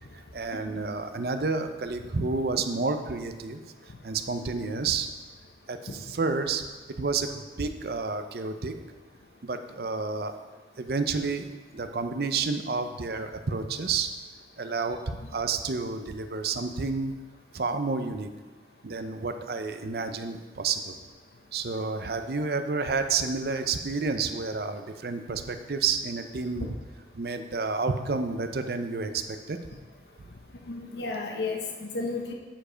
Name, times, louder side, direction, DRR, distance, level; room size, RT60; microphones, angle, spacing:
voice 1, 0.3-3.6 4.0-5.1 5.7-6.7 7.0-8.7 9.4-10.4 10.8-11.5 11.7-14.1 14.6-15.0 15.3-17.1 17.5-18.3 18.8-21.0 21.5-26.8 27.1-29.6, right 4 dB, 60° right, 8 dB, 0.6 m, -30 dB
voice 2, 30.7-32.3, left 3 dB, 70° left, 1 dB, 0.8 m, -33 dB
8.9 x 5.0 x 5.0 m, 1.3 s
head